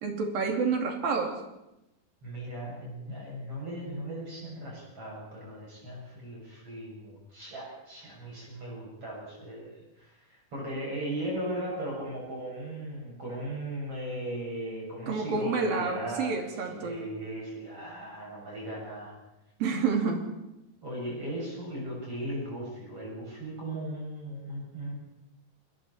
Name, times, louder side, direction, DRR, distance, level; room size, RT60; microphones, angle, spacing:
voice 1, 0.0-1.4 15.1-16.9 19.6-20.3, right 4 dB, 75° right, 2 dB, 4.5 m, -29 dB
voice 2, 2.2-9.7 10.0-16.3 16.6-19.1 20.8-25.0, right 1 dB, 40° right, -4 dB, 8.3 m, -37 dB
29.0 x 21.5 x 4.3 m, 0.91 s
omnidirectional pair, 4.1 m